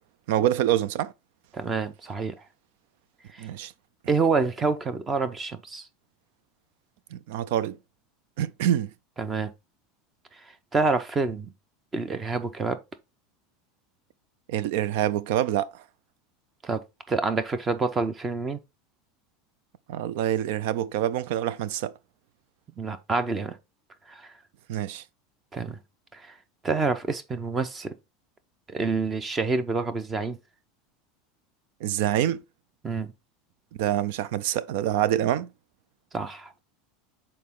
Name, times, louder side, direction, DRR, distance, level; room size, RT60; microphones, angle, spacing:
voice 1, 0.3-1.1 3.4-3.7 7.1-7.8 8.4-8.9 14.5-15.8 19.9-21.9 24.7-25.0 31.8-32.4 33.8-35.5, right 11 dB, 70° right, 0.5 m, -26 dB
voice 2, 1.5-2.3 3.3-3.5 4.1-5.9 9.2-9.5 10.7-11.5 11.9-12.8 16.6-16.8 17.1-18.6 22.8-23.6 24.1-24.3 25.5-25.8 26.1-26.3 26.6-27.9 28.7-30.4 32.8-33.1 36.1-36.6, right 4 dB, 15° right, 0.7 m, -27 dB
6.6 x 4.3 x 3.7 m
supercardioid pair, 150°, 0 cm